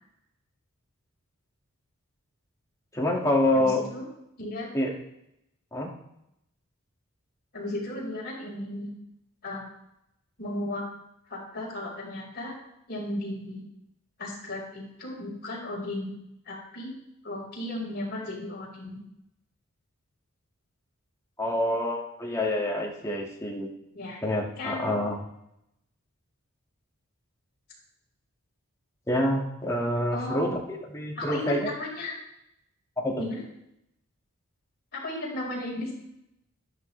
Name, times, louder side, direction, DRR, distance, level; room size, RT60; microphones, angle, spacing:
voice 1, 2.9-3.8 4.7-4.9 5.7-5.9 21.4-23.7 24.2-25.2 29.1-31.7 33.0-33.2, left 1 dB, 15° left, -3 dB, 2.1 m, -27 dB
voice 2, 3.5-4.1 4.4-4.7 7.5-8.9 9.4-9.7 10.4-10.8 11.3-12.5 12.9-13.6 14.2-16.1 16.5-16.9 17.2-19.0 23.9-24.2 24.6-24.9 30.1-30.5 31.2-32.1 33.2-33.4 34.9-35.9, left 1 dB, 50° left, -5 dB, 5.4 m, -35 dB
13.0 x 12.5 x 3.4 m, 0.81 s
head